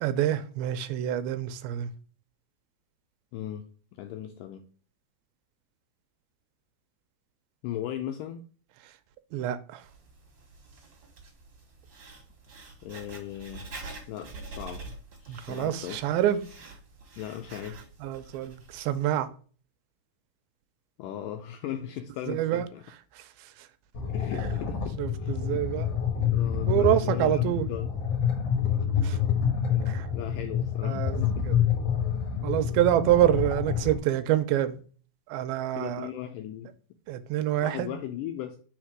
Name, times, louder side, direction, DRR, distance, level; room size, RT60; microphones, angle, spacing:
voice 1, 0.0-1.9 9.3-9.8 15.3-16.4 18.0-19.3 22.3-22.7 23.2-23.7 24.3-24.5 25.0-26.0 26.7-27.7 29.0-29.2 29.9-30.1 30.8-31.2 31.5-31.6 32.4-34.8 35.3-36.1 37.1-38.0, right 12 dB, 85° right, 2.4 m, -27 dB
voice 2, 3.3-4.7 7.6-8.4 12.8-13.7 14.1-16.1 17.2-17.8 18.2-18.3 21.0-22.8 24.1-25.6 26.2-28.0 29.7-31.5 35.7-36.8 37.6-38.6, left 11 dB, 85° left, 1.9 m, -38 dB
Writing, 9.8-19.0, right 3 dB, 45° right, 1.7 m, -46 dB
sound 1, 23.9-34.0, left 8 dB, 55° left, 1.9 m, -28 dB
5.1 x 4.4 x 6.1 m
omnidirectional pair, 4.4 m